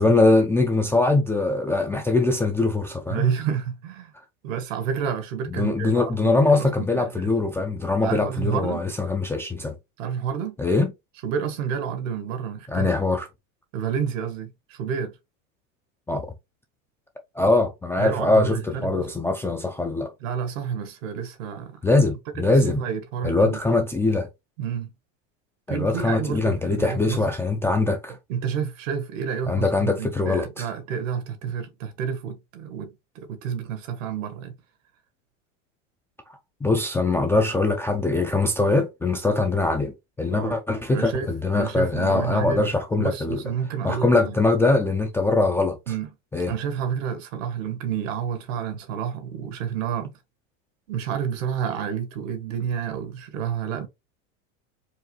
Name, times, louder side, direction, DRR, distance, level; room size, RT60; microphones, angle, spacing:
voice 1, 0.0-3.3 5.5-9.7 10.6-10.9 12.7-13.3 16.1-16.3 17.4-20.1 21.8-22.8 23.2-24.3 25.7-28.2 29.5-30.7 36.6-43.4 43.8-45.8 46.3-46.5, left 3 dB, 5° left, 0.3 m, -22 dB
voice 2, 3.1-4.1 4.4-7.3 8.0-8.8 10.0-10.5 11.2-12.9 13.7-15.1 18.0-19.1 20.2-21.8 22.5-23.6 24.6-24.9 25.7-27.2 28.3-34.5 40.3-40.6 40.9-42.7 43.0-44.3 45.9-46.1 46.5-50.1 50.9-53.9, right 7 dB, 75° right, 1.5 m, -29 dB
4.7 x 2.6 x 2.9 m
supercardioid pair, 130°, 40 cm